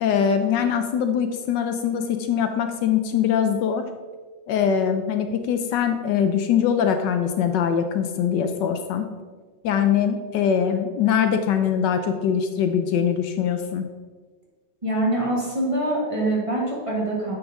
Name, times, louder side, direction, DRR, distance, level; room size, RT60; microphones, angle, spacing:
voice 1, 0.0-3.9 4.5-9.1 9.6-13.9, left 8 dB, 75° left, 7 dB, 1.2 m, -22 dB
voice 2, 14.8-17.3, right 1 dB, 20° right, -4 dB, 1.5 m, -24 dB
9.1 x 5.1 x 3.6 m, 1.4 s
omnidirectional pair, 2.1 m